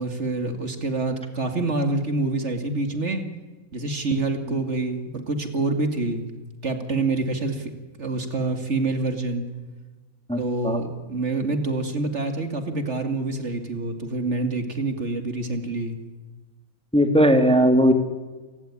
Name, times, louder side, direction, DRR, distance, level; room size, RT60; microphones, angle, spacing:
voice 1, 0.0-3.2 3.7-6.2 6.6-7.7 8.0-9.4 10.4-16.0, right 3 dB, 55° right, 7 dB, 2.7 m, -26 dB
voice 2, 10.3-10.8 16.9-17.9, equal, 5° left, 7 dB, 2.0 m, -18 dB
28.5 x 16.5 x 9.9 m, 1.3 s
omnidirectional pair, 1.5 m